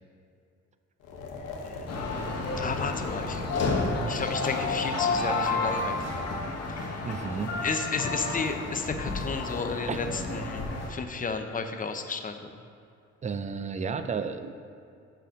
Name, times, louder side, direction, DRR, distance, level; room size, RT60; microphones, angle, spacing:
sound 1, 1.0-7.0, left 2 dB, 90° left, 1.1 m, -41 dB
sound 2, 1.9-10.9, left 3 dB, 55° left, 1.3 m, -31 dB
voice 1, 2.6-6.3 6.7-7.1 7.6-12.6, left 4 dB, 30° left, 6 dB, 0.6 m, -33 dB
voice 2, 7.1-7.5 9.9-10.0 13.2-14.5, right 5 dB, 25° right, 9 dB, 0.4 m, -32 dB
5.5 x 5.1 x 6.2 m, 2.4 s
cardioid pair, 90°, 30 cm